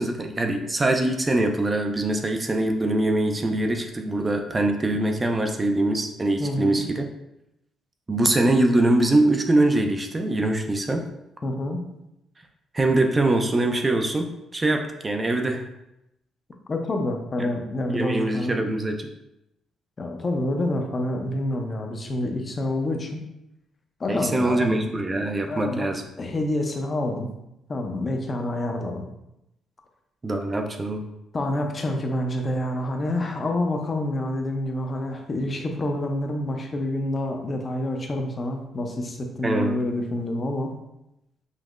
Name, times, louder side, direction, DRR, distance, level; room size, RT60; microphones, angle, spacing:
voice 1, 0.0-7.0 8.1-11.1 12.7-15.6 17.4-17.5 17.9-19.1 24.1-26.0 30.2-31.0 39.4-39.8, right 2 dB, 25° right, 4 dB, 0.4 m, -23 dB
voice 2, 6.4-6.8 11.4-11.8 16.7-18.6 20.0-23.1 24.0-24.8 25.5-25.9 26.2-27.3 27.7-29.1 31.3-40.7, left 1 dB, 35° left, 3 dB, 0.5 m, -27 dB
5.2 x 2.0 x 2.4 m, 0.86 s
cardioid pair, 90°, 0 cm